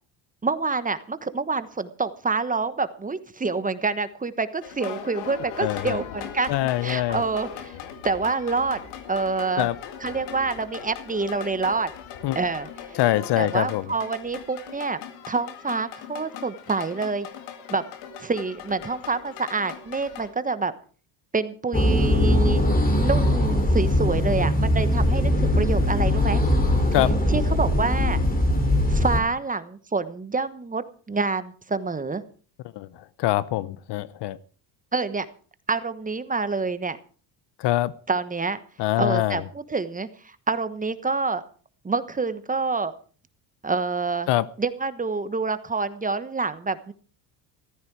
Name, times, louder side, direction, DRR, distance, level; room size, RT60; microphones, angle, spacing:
voice 1, 0.4-6.5 6.8-7.7 8.0-8.8 9.1-9.7 10.0-11.9 12.3-13.0 13.4-15.0 15.3-17.3 17.7-17.8 18.2-20.7 21.3-22.6 23.0-26.4 27.3-28.2 28.9-32.2 34.9-35.3 35.7-37.0 38.1-38.6 39.0-41.4 41.8-42.9 43.6-44.3 44.6-46.9, right 4 dB, 15° right, 1.1 m, -27 dB
sound 1, 4.6-20.3, left 8 dB, 85° left, 2.3 m, -39 dB
voice 2, 5.6-6.0 6.5-7.2 9.6-9.7 12.2-12.4 13.0-13.8 26.9-27.1 32.8-32.9 33.2-34.4 37.6-37.9 38.8-39.4 44.3-44.5, left 15 dB, 60° left, 0.9 m, -23 dB
sound 2, 21.7-29.2, left 1 dB, 20° left, 3.2 m, -21 dB
15.0 x 13.0 x 4.8 m
supercardioid pair, 95°, 47 cm